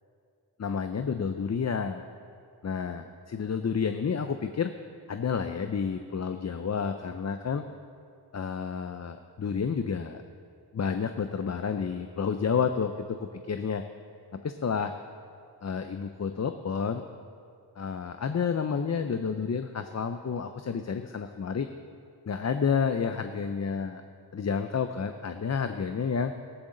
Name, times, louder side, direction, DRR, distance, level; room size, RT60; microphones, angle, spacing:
voice 1, 0.6-2.0 2.6-4.7 5.1-7.6 8.3-10.2 10.7-13.8 14.3-14.9 15.6-17.0 17.8-21.7 22.3-24.0 24.3-26.3, left 6 dB, 40° left, 8 dB, 0.6 m, -30 dB
17.5 x 14.0 x 3.8 m, 2.4 s
wide cardioid pair, 85°, 42 cm